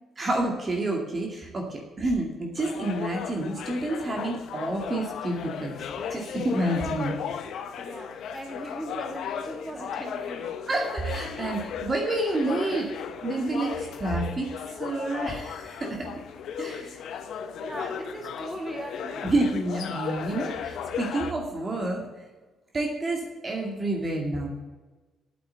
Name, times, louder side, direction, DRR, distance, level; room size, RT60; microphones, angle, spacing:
voice 1, 0.2-7.2 10.7-12.9 13.2-14.5 14.8-16.2 16.6-17.0 19.2-22.1 22.7-24.5, right 2 dB, 35° right, 1 dB, 2.2 m, -29 dB
sound 1, 2.6-21.3, left 7 dB, 75° left, 1.0 m, -36 dB
voice 2, 7.8-10.5 17.6-19.3, right 1 dB, 15° right, 2 dB, 2.5 m, -38 dB
8.9 x 7.6 x 7.6 m, 1.2 s
cardioid pair, 90°, 0 cm